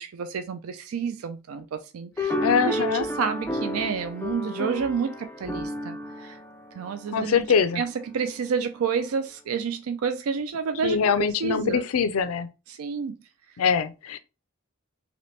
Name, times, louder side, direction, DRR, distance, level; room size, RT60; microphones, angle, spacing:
voice 1, 0.0-2.4 2.6-6.4 6.7-7.4 7.8-11.8 12.7-13.2, right 6 dB, 75° right, 0.4 m, -29 dB
sound 1, 2.2-7.7, left 1 dB, 10° left, 0.4 m, -32 dB
voice 2, 2.4-3.1 7.1-7.8 10.8-12.5 13.6-14.2, left 6 dB, 75° left, 0.4 m, -23 dB
2.9 x 2.9 x 3.1 m
head